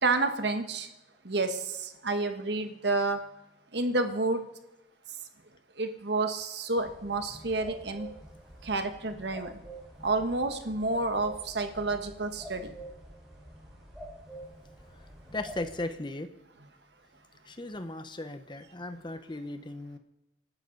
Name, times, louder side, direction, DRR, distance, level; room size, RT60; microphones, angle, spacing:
voice 1, 0.0-0.9 1.2-3.2 3.7-4.4 5.8-8.1 8.6-9.6 10.0-12.7, right 3 dB, 60° right, 7 dB, 1.5 m, -29 dB
sound 1, 6.8-15.8, right 1 dB, 5° right, 5.1 m, -47 dB
voice 2, 14.9-16.3 17.4-20.0, left 2 dB, 25° left, 9 dB, 1.0 m, -37 dB
29.0 x 12.0 x 4.0 m, 0.95 s
head